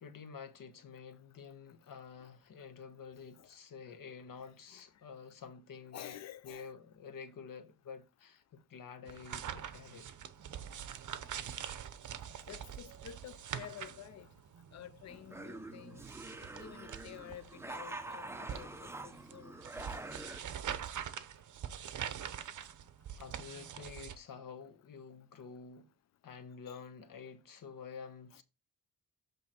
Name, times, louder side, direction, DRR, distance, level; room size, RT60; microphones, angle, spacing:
voice 1, 0.0-6.2 6.4-10.1 23.1-25.9 26.2-28.4, left 6 dB, 65° left, 1.3 m, -49 dB
voice 2, 5.9-6.7 12.5-14.3 14.7-16.0 16.6-19.6 26.7-26.8 28.3-28.4, left 10 dB, 50° left, 0.6 m, -50 dB
sound 1, 9.1-24.2, right 9 dB, 60° right, 0.9 m, -44 dB
sound 2, 15.1-20.4, right 2 dB, 5° right, 0.7 m, -46 dB
8.0 x 3.7 x 4.4 m
cardioid pair, 105°, 35 cm